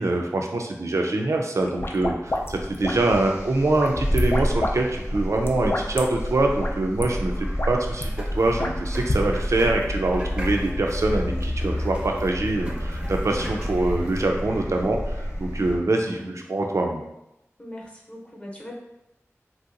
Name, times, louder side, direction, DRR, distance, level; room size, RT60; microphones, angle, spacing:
voice 1, 0.0-17.0, right 2 dB, 65° right, 2 dB, 0.3 m, -24 dB
sound 1, 1.6-3.3 3.7-4.7 5.0-6.0 6.6-6.7 7.0-7.1 7.4-8.1 8.6-9.2, left 1 dB, 45° left, 0.4 m, -29 dB
sound 2, 2.3-15.8, equal, 60° left, 0.7 m, -29 dB
sound 3, 7.7-14.2, equal, 20° right, 0.5 m, -40 dB
voice 2, 16.0-16.5 17.6-18.7, left 1 dB, 20° left, -3 dB, 0.7 m, -42 dB
3.1 x 2.7 x 2.5 m, 0.89 s
wide cardioid pair, 55°, 5 cm